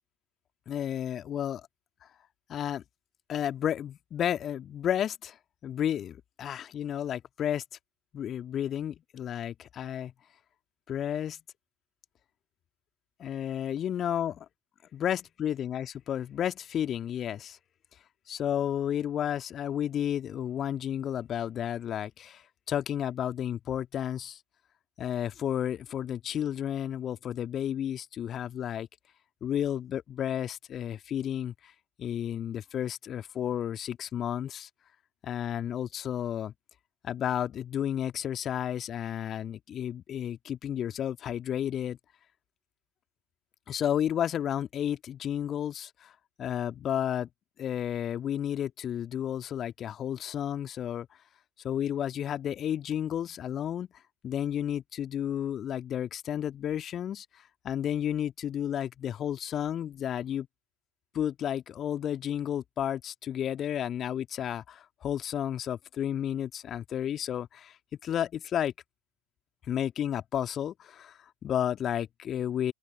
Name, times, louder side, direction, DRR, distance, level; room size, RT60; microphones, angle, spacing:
voice 1, 0.7-1.6 2.0-2.1 2.5-2.8 3.3-5.4 5.6-7.6 8.1-10.1 10.9-11.4 13.2-14.4 14.9-17.6 18.3-24.4 25.0-28.9 29.4-31.7 32.0-34.7 35.2-36.5 37.0-42.0 43.7-46.1 46.4-47.3 47.6-51.1 51.6-53.9 54.2-57.3 57.6-60.5 61.1-67.8 68.0-68.7 69.7-72.7, left 10 dB, 30° left, 1.8 m, -32 dB
open air
figure-of-eight pair, 80°, 0 cm